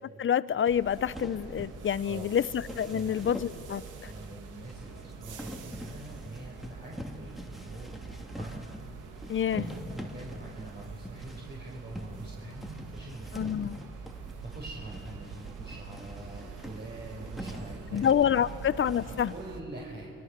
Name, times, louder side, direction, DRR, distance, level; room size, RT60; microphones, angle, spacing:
voice 1, 0.2-4.1 9.3-9.7 13.3-13.8 17.9-19.3, left 8 dB, 40° left, 17 dB, 0.7 m, -27 dB
sound 1, 0.6-19.4, equal, ahead, 2.5 m, -45 dB
sound 2, 0.7-19.6, right 5 dB, 85° right, 2.5 m, -45 dB
voice 2, 2.9-3.3 4.0-8.6 9.5-13.5 14.4-20.1, right 2 dB, 35° right, -3 dB, 5.4 m, -44 dB
30.0 x 23.5 x 6.8 m, 2.7 s
cardioid pair, 90°, 30 cm